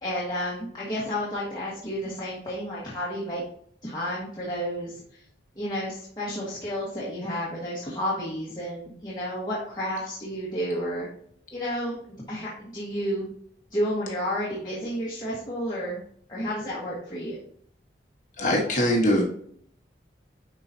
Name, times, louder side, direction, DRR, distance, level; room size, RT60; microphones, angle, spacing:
voice 1, 0.0-3.4 3.8-5.2 5.5-11.1 11.5-13.3 13.7-16.0 16.3-17.4, equal, 25° left, -7 dB, 1.4 m, -31 dB
voice 2, 18.4-19.2, equal, 45° left, -1 dB, 1.2 m, -22 dB
10.5 x 4.0 x 2.7 m, 0.63 s
head